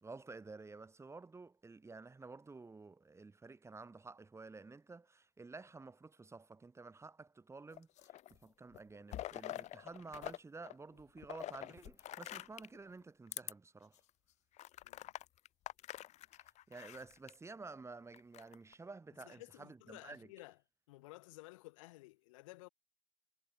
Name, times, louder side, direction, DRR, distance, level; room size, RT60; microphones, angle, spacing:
voice 1, 0.0-14.0 16.7-20.3, right 3 dB, 15° right, 1.2 m, -52 dB
sound 1, 7.7-8.4 8.7-10.4 10.6-12.8 13.3-13.5 14.0-14.1 14.6-17.3 18.1-18.7, left 14 dB, 45° left, 0.5 m, -46 dB
voice 2, 14.8-15.1 19.2-20.6 20.9-22.7, left 21 dB, 75° left, 1.5 m, -55 dB
hypercardioid pair, 75°, 16 cm